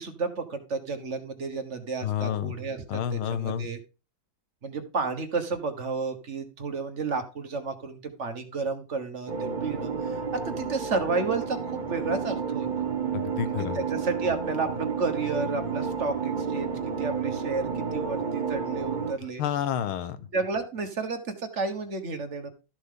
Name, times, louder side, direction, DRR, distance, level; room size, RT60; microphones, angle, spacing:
voice 1, 0.0-3.8 4.6-12.9 13.4-19.4 20.3-22.5, right 4 dB, 40° right, 7 dB, 1.3 m, -32 dB
voice 2, 2.0-2.5 2.9-3.7 13.1-13.8 19.4-20.2, left 10 dB, 90° left, 13 dB, 1.8 m, -29 dB
sound 1, 9.3-19.1, right 6 dB, 60° right, 0.4 m, -31 dB
13.0 x 7.1 x 3.8 m, 0.32 s
omnidirectional pair, 2.3 m